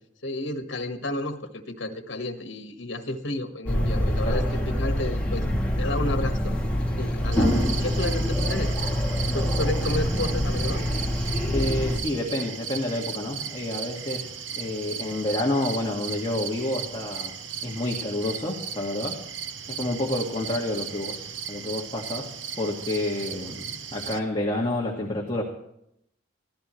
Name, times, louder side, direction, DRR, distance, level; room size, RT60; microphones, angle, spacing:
voice 1, 0.2-5.4 5.8-6.5 7.0-8.8 9.3-10.8, left 1 dB, 75° left, 6 dB, 1.6 m, -31 dB
sound 1, 3.7-12.0, equal, 5° left, 2.6 m, -25 dB
sound 2, 7.3-24.2, right 7 dB, 80° right, 1.0 m, -36 dB
voice 2, 11.5-17.4 17.6-19.2 19.7-25.4, left 1 dB, 25° left, -1 dB, 1.9 m, -29 dB
23.5 x 16.0 x 3.2 m, 0.76 s
head